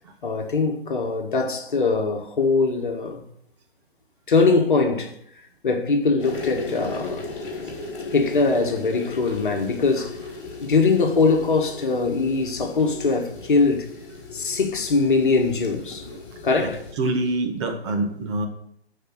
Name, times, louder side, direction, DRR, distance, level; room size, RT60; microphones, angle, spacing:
voice 1, 0.2-3.2 4.3-5.1 5.6-7.3 8.1-10.2 10.6-13.9 14.3-16.1 16.4-16.8, left 4 dB, 50° left, 1.6 m, -22 dB
sound 1, 6.2-16.9, left 3 dB, 30° left, 4.8 m, -37 dB
voice 2, 16.6-18.5, right 2 dB, 25° right, 1.5 m, -26 dB
14.0 x 4.9 x 6.5 m
figure-of-eight pair, 135°, 32 cm